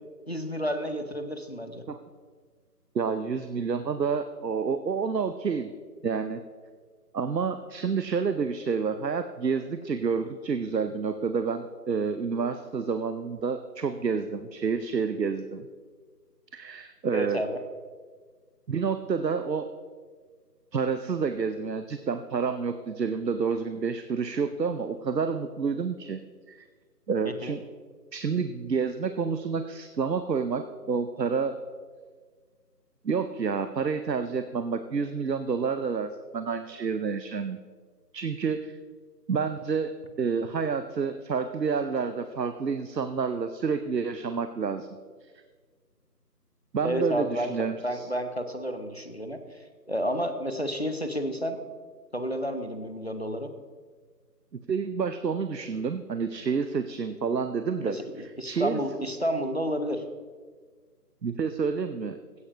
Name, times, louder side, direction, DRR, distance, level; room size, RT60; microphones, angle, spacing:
voice 1, 0.3-1.8 17.1-17.6 27.2-27.5 46.8-47.5 47.8-49.4 49.9-51.6 52.1-53.5 57.8-58.0 58.4-60.0, equal, 40° left, 8 dB, 0.7 m, -30 dB
voice 2, 2.9-5.7 6.0-6.4 7.1-15.7 16.5-17.4 18.7-19.7 20.7-26.2 26.5-26.6 27.1-27.6 28.1-31.6 33.0-37.6 38.1-38.8 39.3-39.9 40.2-44.9 45.2-45.3 46.7-48.1 54.5-58.8 61.2-62.2, right 5 dB, 80° right, 10 dB, 0.7 m, -29 dB
16.0 x 9.6 x 2.9 m, 1.5 s
figure-of-eight pair, 170°, 49 cm